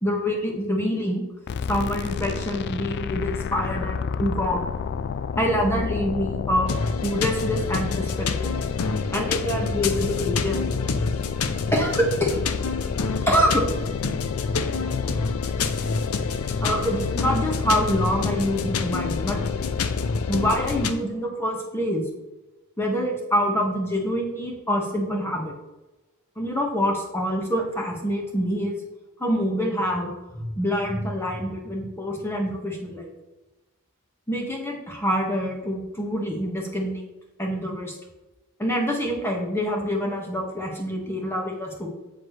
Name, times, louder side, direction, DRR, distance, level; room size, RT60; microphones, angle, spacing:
voice 1, 0.0-1.2 1.7-4.7 5.4-8.5 9.1-10.7 11.7-12.4 13.3-13.7 16.6-19.4 20.3-22.1 22.8-25.6 26.4-28.8 29.2-33.1 34.3-37.0 37.4-37.9 38.6-41.9, equal, 10° left, -1 dB, 1.7 m, -26 dB
sound 1, 1.5-21.1, left 6 dB, 50° left, 0.3 m, -29 dB
sound 2, 6.7-20.9, left 4 dB, 90° left, 0.7 m, -30 dB
8.0 x 7.6 x 3.3 m, 1.1 s
head